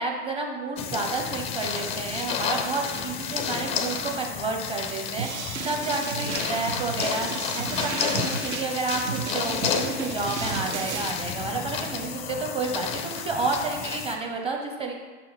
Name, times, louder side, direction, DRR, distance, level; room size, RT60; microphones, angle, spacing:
voice 1, 0.0-15.0, right 3 dB, 15° right, 2 dB, 0.8 m, -30 dB
sound 1, 0.8-14.1, left 7 dB, 20° left, 0.4 m, -31 dB
sound 2, 5.2-11.1, right 6 dB, 70° right, 0.6 m, -34 dB
6.2 x 4.0 x 4.5 m, 1.4 s
figure-of-eight pair, 95°, 35 cm